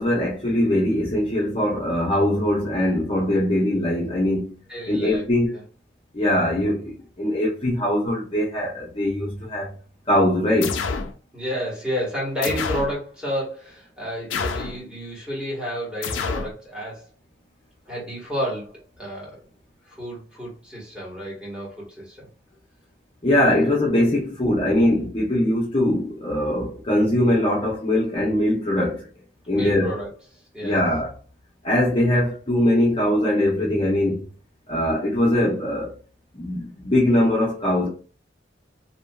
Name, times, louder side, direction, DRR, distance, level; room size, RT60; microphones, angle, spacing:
voice 1, 0.0-4.6 4.9-5.6 6.1-9.7 10.1-10.8 23.2-29.1 29.5-30.0 30.6-31.1 31.6-34.3 34.7-36.0 36.3-37.9, left 1 dB, 30° left, 0.6 m, -21 dB
voice 2, 4.7-5.2 5.5-5.6 11.3-17.1 17.8-19.4 19.9-22.3 23.6-23.7 29.5-30.1 30.5-30.8, equal, 5° right, 1.3 m, -31 dB
sound 1, 10.6-11.1 12.4-13.0 14.3-14.8 16.0-16.5, left 5 dB, 90° left, 0.4 m, -27 dB
2.8 x 2.6 x 2.2 m
head